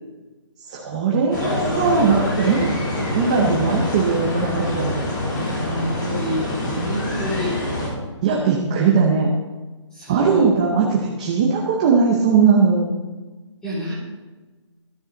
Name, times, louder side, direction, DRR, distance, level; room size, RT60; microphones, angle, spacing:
voice 1, 0.7-2.7 3.1-5.0 8.2-9.3 10.1-12.9, right 5 dB, 15° right, 0 dB, 0.7 m, -19 dB
sound 1, 1.3-7.9, left 1 dB, 40° left, 3.5 m, -25 dB
voice 2, 5.3-7.6 9.9-10.5 13.6-13.9, equal, 5° left, -7 dB, 2.6 m, -28 dB
14.0 x 13.0 x 3.9 m, 1.2 s
hypercardioid pair, 180°, 16 cm